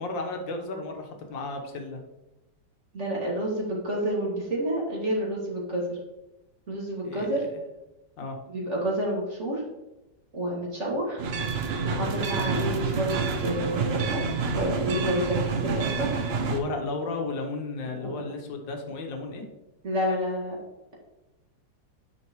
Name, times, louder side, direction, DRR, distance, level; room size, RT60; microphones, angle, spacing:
voice 1, 0.0-2.0 7.0-7.5 8.2-8.4 11.9-12.1 16.5-19.4, left 3 dB, 85° left, 3 dB, 1.8 m, -33 dB
voice 2, 2.9-6.0 6.7-7.4 8.5-9.6 10.3-11.2 11.8-16.1 17.9-18.2 19.8-20.5, right 1 dB, 40° right, -4 dB, 2.4 m, -29 dB
sound 1, 11.2-16.6, right 4 dB, 80° right, 0.5 m, -28 dB
9.2 x 5.8 x 3.1 m, 1.0 s
omnidirectional pair, 2.0 m